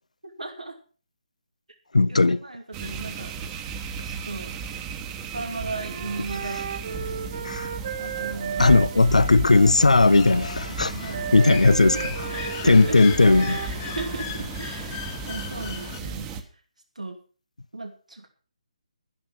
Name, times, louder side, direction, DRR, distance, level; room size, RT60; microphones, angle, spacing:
voice 1, 0.2-0.8 2.1-4.5 5.3-6.6 6.8-7.5 8.0-8.8 10.9-13.2 13.5-16.3 16.9-17.2 17.7-18.3, right 2 dB, 85° right, 2.7 m, -37 dB
voice 2, 1.9-2.4 7.4-7.7 8.6-11.0 11.3-12.0 12.6-13.6, left 3 dB, 80° left, 0.6 m, -17 dB
sound 1, 2.7-16.4, right 5 dB, 20° right, 1.3 m, -35 dB
Wind instrument woodwind instrument, 5.7-14.2, right 6 dB, 50° right, 1.9 m, -34 dB
sound 2, 10.1-16.0, left 9 dB, 25° left, 1.4 m, -37 dB
12.0 x 11.5 x 5.8 m
figure-of-eight pair, 150°, 4 cm